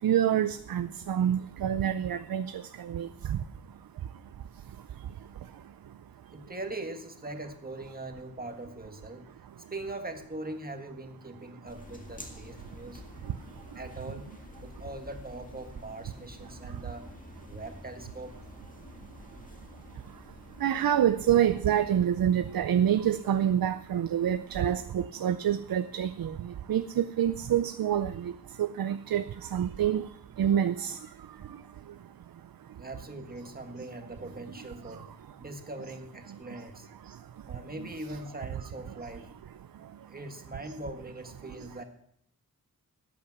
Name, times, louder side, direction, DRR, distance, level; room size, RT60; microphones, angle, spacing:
voice 1, 0.0-2.5 2.8-3.4 20.6-26.4 26.7-28.3 28.6-29.2 29.5-30.0 30.4-31.0, right 10 dB, 85° right, 12 dB, 0.5 m, -27 dB
voice 2, 6.3-9.3 9.6-13.0 13.7-14.3 14.6-17.1 17.5-18.4 32.8-36.9 37.5-39.3 40.1-41.8, right 2 dB, 25° right, 6 dB, 1.6 m, -41 dB
sound 1, 11.7-24.6, left 1 dB, 25° left, 1.9 m, -50 dB
13.0 x 8.8 x 5.9 m, 0.68 s
wide cardioid pair, 100°, 34 cm